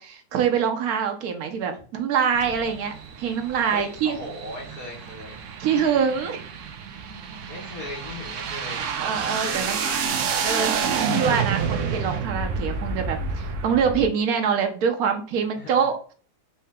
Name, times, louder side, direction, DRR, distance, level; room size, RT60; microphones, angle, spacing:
voice 1, 0.0-4.2 5.6-6.4 9.0-9.8 10.4-10.8 11.1-15.9, right 7 dB, 85° right, 5 dB, 1.2 m, -24 dB
sound 1, 2.3-14.1, right 6 dB, 65° right, 0.9 m, -29 dB
voice 2, 3.7-5.4 7.5-8.9 9.4-10.2 15.6-15.8, left 1 dB, 80° left, -7 dB, 1.8 m, -37 dB
4.2 x 2.8 x 3.4 m, 0.40 s
omnidirectional pair, 1.5 m